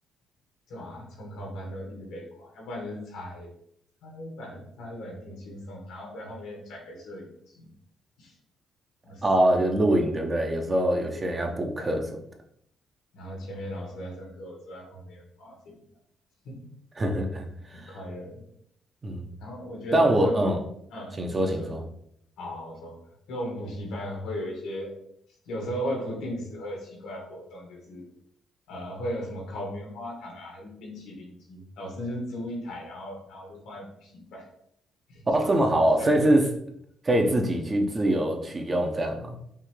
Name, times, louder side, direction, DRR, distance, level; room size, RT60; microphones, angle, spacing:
voice 1, 0.7-3.5 4.0-7.7 8.2-8.3 9.0-9.2 11.1-11.5 13.1-15.8 16.4-16.7 17.7-18.5 19.4-20.5 20.9-21.7 22.4-23.0 23.3-24.9 25.5-28.1 28.7-34.5 35.1-35.6 36.0-36.3, equal, 90° left, -1 dB, 1.7 m, -37 dB
voice 2, 9.2-12.2 17.0-18.0 19.0-19.3 19.9-20.6 21.2-21.8 35.3-36.5 37.0-39.3, right 1 dB, 30° right, 3 dB, 0.8 m, -24 dB
5.5 x 2.7 x 3.3 m, 0.70 s
cardioid pair, 90°, 0 cm